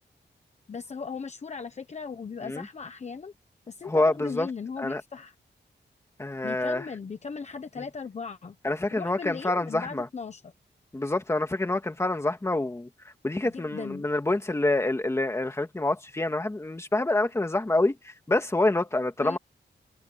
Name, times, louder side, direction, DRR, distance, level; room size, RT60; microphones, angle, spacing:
voice 1, 0.7-3.3 3.7-5.3 6.4-8.6 8.9-10.5 13.4-14.1 19.2-19.4, left 5 dB, 40° left, 1.1 m, -38 dB
voice 2, 3.8-4.5 4.8-5.0 6.2-6.9 8.6-10.1 10.9-12.9 13.2-18.0 18.3-19.4, left 2 dB, 15° left, 2.1 m, -26 dB
open air
wide cardioid pair, 180°, 18 cm